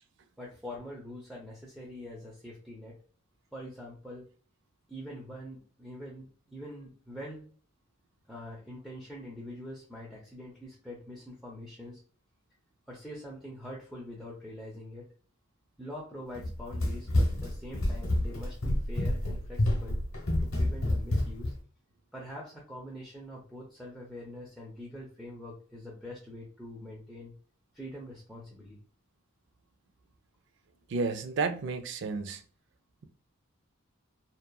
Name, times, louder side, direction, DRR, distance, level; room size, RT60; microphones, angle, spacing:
voice 1, 0.4-3.0 3.5-4.3 4.9-7.5 8.3-12.0 12.9-15.1 15.8-20.0 20.4-21.5 22.1-27.3 27.7-28.8, left 1 dB, ahead, 0.5 m, -44 dB
Run, 16.3-21.6, left 1 dB, 85° left, 0.9 m, -28 dB
voice 2, 30.9-32.4, right 4 dB, 55° right, 0.3 m, -31 dB
2.8 x 2.3 x 2.2 m
head